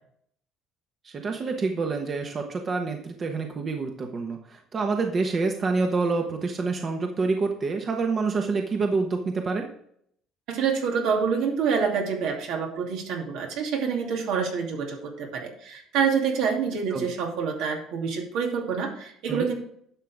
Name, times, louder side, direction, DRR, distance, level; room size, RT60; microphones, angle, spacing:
voice 1, 1.0-9.7 16.9-17.1 19.3-19.4, right 4 dB, 30° right, 3 dB, 1.1 m, -27 dB
voice 2, 10.5-19.6, right 6 dB, 75° right, 1 dB, 2.6 m, -27 dB
11.5 x 6.5 x 3.5 m, 0.66 s
cardioid pair, 135°, 0 cm